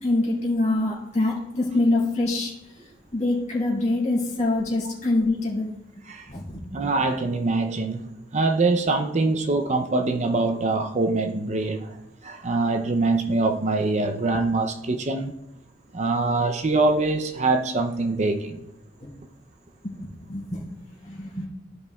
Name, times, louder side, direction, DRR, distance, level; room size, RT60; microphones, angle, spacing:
voice 1, 0.0-5.7 6.3-6.7 19.0-19.1 19.8-21.5, left 2 dB, 40° left, 2.2 m, -25 dB
voice 2, 6.7-12.0 12.2-15.3 15.9-18.6, right 3 dB, 40° right, 0.5 m, -24 dB
15.0 x 5.3 x 2.3 m
head